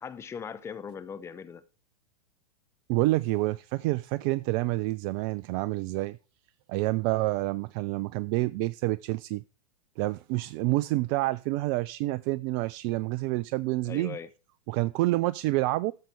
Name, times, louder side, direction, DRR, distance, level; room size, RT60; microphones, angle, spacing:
voice 1, 0.0-1.6 13.8-14.3, left 6 dB, 15° left, 0.7 m, -39 dB
voice 2, 2.9-6.2 6.7-9.4 10.0-14.2 14.7-15.9, right 19 dB, 40° right, 0.4 m, -28 dB
13.0 x 7.4 x 3.4 m
figure-of-eight pair, 100°, 19 cm